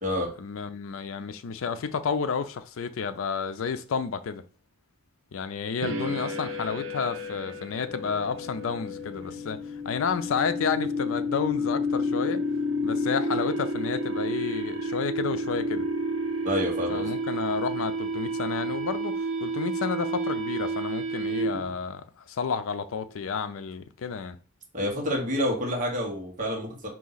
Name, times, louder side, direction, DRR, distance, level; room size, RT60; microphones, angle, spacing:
voice 1, 0.4-4.4 5.3-9.6 9.8-12.4 12.8-15.9 16.9-24.4, left 5 dB, 70° left, 0.4 m, -31 dB
sound 1, 5.8-21.7, equal, 65° right, 0.7 m, -30 dB
voice 2, 16.4-17.1 24.7-26.9, equal, 40° right, 1.2 m, -28 dB
4.0 x 2.7 x 4.0 m
head